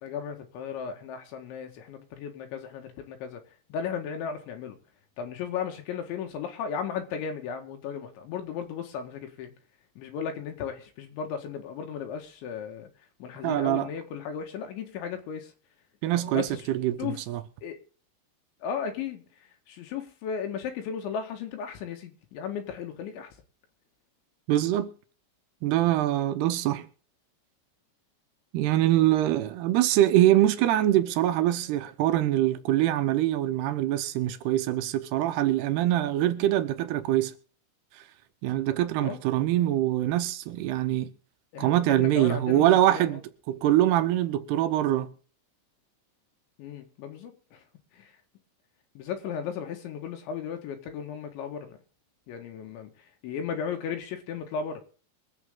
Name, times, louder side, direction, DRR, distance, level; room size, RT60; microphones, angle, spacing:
voice 1, 0.0-3.4 3.7-4.8 5.2-9.5 10.0-12.9 13.2-15.5 16.3-16.6 17.0-17.2 17.6-17.8 18.6-19.2 19.7-23.3 39.0-39.2 41.5-43.2 46.6-47.6 48.0-48.1 49.0-51.8 52.3-52.9 53.2-54.8, left 7 dB, 80° left, 4.0 m, -35 dB
voice 2, 13.4-13.9 16.0-17.4 24.5-24.9 25.6-26.9 28.5-37.3 38.4-41.1 41.6-43.2 43.5-45.1, right 13 dB, 75° right, 2.6 m, -24 dB
23.5 x 8.2 x 3.7 m
omnidirectional pair, 5.3 m